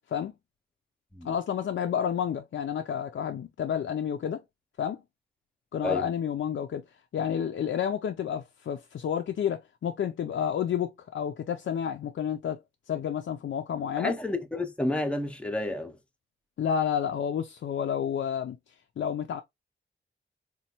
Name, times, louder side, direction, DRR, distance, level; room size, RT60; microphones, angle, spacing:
voice 1, 1.2-4.4 4.8-5.0 5.7-6.8 7.1-12.6 12.9-14.1 16.6-18.6 19.0-19.4, left 8 dB, 70° left, 0.4 m, -30 dB
voice 2, 14.0-16.0, left 1 dB, 5° left, 0.5 m, -30 dB
4.2 x 2.2 x 2.7 m
wide cardioid pair, 145°, 21 cm